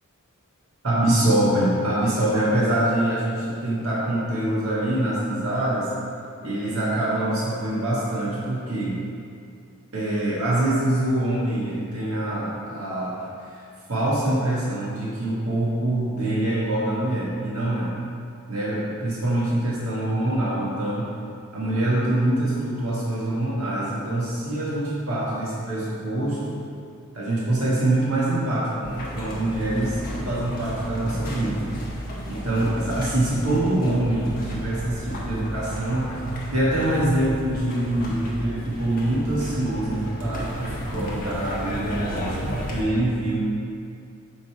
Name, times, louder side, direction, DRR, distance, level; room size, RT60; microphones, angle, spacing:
voice 1, 0.8-5.9 6.4-9.0 9.9-13.6 13.9-17.9 18.5-21.1 21.5-26.6 27.1-31.7 32.3-36.2 36.5-43.4, right 1 dB, 75° right, -7 dB, 1.6 m, -24 dB
sound 1, 28.8-42.8, equal, 40° left, 1.3 m, -33 dB
7.8 x 4.1 x 4.6 m, 2.4 s
head